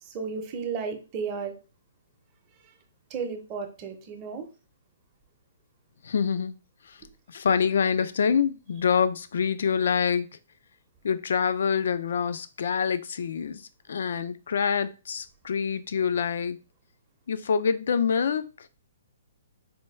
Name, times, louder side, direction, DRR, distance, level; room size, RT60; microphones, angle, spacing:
voice 1, 0.0-1.6 3.1-4.5, right 5 dB, 25° right, 0.7 m, -33 dB
voice 2, 6.0-6.6 6.9-7.0 7.3-10.3 11.0-13.6 13.9-16.6 17.3-18.4, left 6 dB, 70° left, 0.4 m, -26 dB
4.3 x 2.3 x 3.2 m
hypercardioid pair, 155°, 0 cm